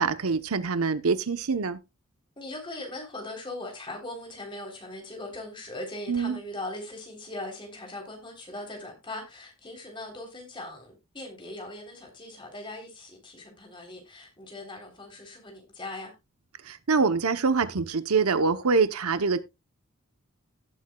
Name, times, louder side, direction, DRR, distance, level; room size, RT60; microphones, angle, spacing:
voice 1, 0.0-1.8 6.1-6.4 16.7-19.4, right 4 dB, 85° right, 0.9 m, -25 dB
voice 2, 2.4-16.1, left 2 dB, 20° left, 3.5 m, -40 dB
17.5 x 7.5 x 2.3 m
head